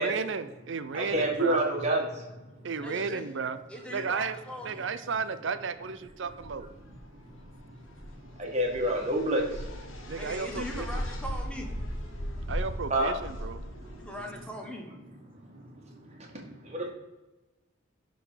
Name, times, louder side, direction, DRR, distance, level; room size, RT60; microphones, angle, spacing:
voice 1, 0.0-1.6 2.6-3.6 3.9-4.4 4.6-6.7 10.1-11.0 12.5-13.6, right 5 dB, 60° right, 12 dB, 0.5 m, -33 dB
voice 2, 0.9-2.3 7.7-7.8 8.4-9.9 12.9-13.1 13.6-13.9 15.3-16.9, right 1 dB, 35° right, 0 dB, 1.6 m, -29 dB
voice 3, 2.8-3.2 3.7-4.9 10.1-11.7 14.0-14.8, equal, 5° left, 1 dB, 1.2 m, -40 dB
sound 1, 6.1-14.4, equal, 80° left, 1.6 m, -38 dB
11.0 x 3.9 x 5.0 m, 1.1 s
head